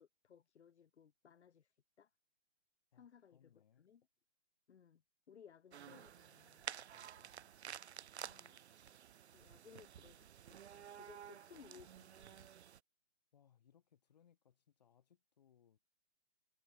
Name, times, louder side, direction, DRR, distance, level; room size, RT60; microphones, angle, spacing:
voice 1, 0.0-2.1 2.9-4.1 4.7-5.0 5.3-6.7 8.2-8.6 9.3-12.5, left 7 dB, 90° left, 1.3 m, -62 dB
voice 2, 2.9-3.9 6.9-7.5 13.3-15.9, left 9 dB, 40° left, 4.7 m, -71 dB
sound 1, 5.7-12.8, right 9 dB, 80° right, 0.7 m, -52 dB
hypercardioid pair, 180°, 33 cm